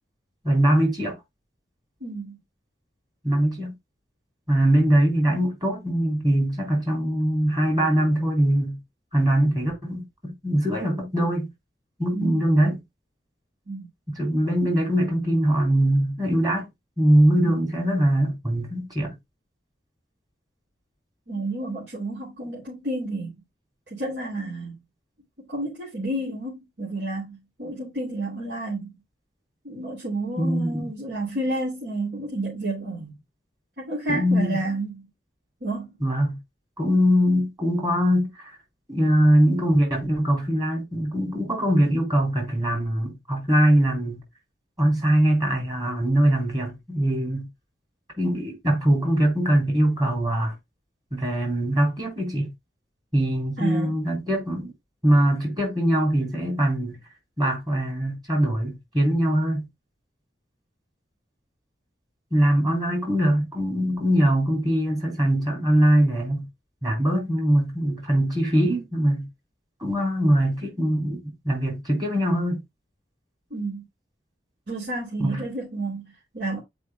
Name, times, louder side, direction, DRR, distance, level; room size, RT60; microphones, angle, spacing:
voice 1, 0.4-1.2 3.2-3.8 4.5-8.8 9.1-11.5 12.0-12.8 14.1-16.7 17.0-19.1 30.4-30.9 34.1-34.6 36.0-36.4 36.8-38.6 38.9-44.2 44.8-47.5 48.2-50.5 51.1-52.5 53.1-54.7 55.0-57.0 57.4-59.7 62.3-66.5 66.8-69.3 69.8-72.6 75.2-75.4, right 1 dB, 25° right, 4.0 m, -22 dB
voice 2, 2.0-2.4 12.1-12.4 13.7-13.9 17.4-17.6 21.3-23.4 23.9-24.8 25.4-28.9 29.6-33.2 33.8-35.1 35.6-36.0 53.6-54.0 73.5-73.8 74.7-76.6, right 2 dB, 80° right, 2.9 m, -30 dB
8.5 x 5.1 x 2.2 m
head